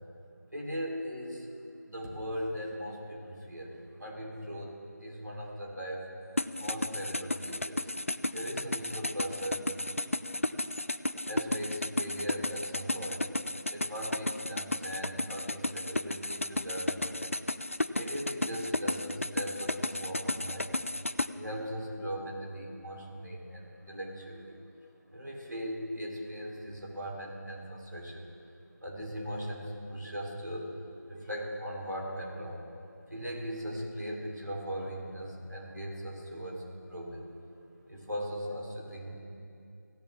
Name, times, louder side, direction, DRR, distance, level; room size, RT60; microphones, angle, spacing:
voice 1, 0.5-1.5 1.9-6.0 6.6-7.9 8.3-9.7 11.3-13.2 13.7-17.3 18.0-20.8 21.3-24.6 25.1-28.3 28.8-30.7 31.1-32.6 33.1-37.2 37.9-39.2, equal, 75° right, -3 dB, 3.9 m, -39 dB
sound 1, 6.4-21.3, left 1 dB, 45° left, 0.5 m, -33 dB
18.0 x 16.0 x 3.7 m, 2.6 s
figure-of-eight pair, 170°, 10 cm